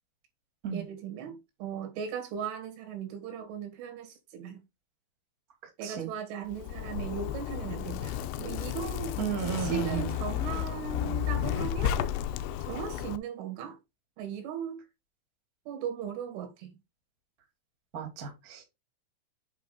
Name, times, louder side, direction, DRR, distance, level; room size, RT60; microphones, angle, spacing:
voice 1, 0.7-4.6 5.8-12.0 12.6-13.8 14.2-14.8 15.7-16.7, right 8 dB, 75° right, 4.2 m, -38 dB
Zipper (clothing), 6.5-13.2, left 11 dB, 85° left, 2.5 m, -32 dB
voice 2, 9.2-10.1 17.9-18.6, right 9 dB, 30° right, 1.8 m, -33 dB
8.1 x 5.5 x 3.8 m
omnidirectional pair, 5.6 m